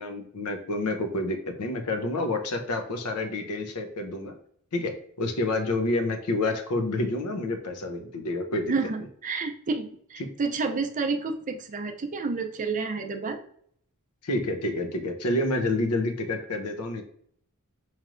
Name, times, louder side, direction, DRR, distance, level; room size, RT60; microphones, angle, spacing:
voice 1, 0.0-4.4 4.7-8.7 10.2-10.3 14.2-17.0, left 2 dB, 85° left, 5 dB, 0.7 m, -28 dB
voice 2, 8.7-13.4, right 4 dB, 35° right, 6 dB, 0.5 m, -30 dB
4.3 x 3.2 x 2.5 m, 0.64 s
head